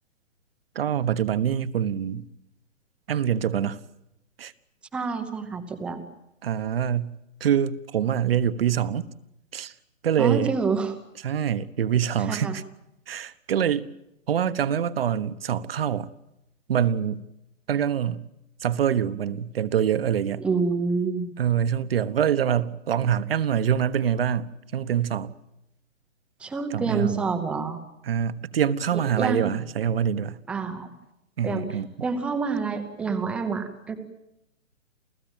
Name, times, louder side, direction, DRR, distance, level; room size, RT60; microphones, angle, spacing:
voice 1, 0.7-2.2 3.1-3.8 4.4-4.5 6.4-7.1 7.4-9.1 9.5-9.7 10.0-10.5 11.2-12.6 13.1-13.9 14.3-16.1 16.7-17.2 17.7-18.2 18.6-20.4 21.4-25.3 26.7-27.3 28.0-30.4 31.4-32.1, right 9 dB, 45° right, 1.2 m, -25 dB
voice 2, 4.9-6.0 10.2-11.0 12.3-12.5 20.4-21.3 26.4-27.8 29.2-29.5 30.5-30.9 31.4-31.7 32.0-33.9, right 4 dB, 5° right, 0.9 m, -27 dB
29.0 x 16.5 x 9.0 m
hypercardioid pair, 165°, 39 cm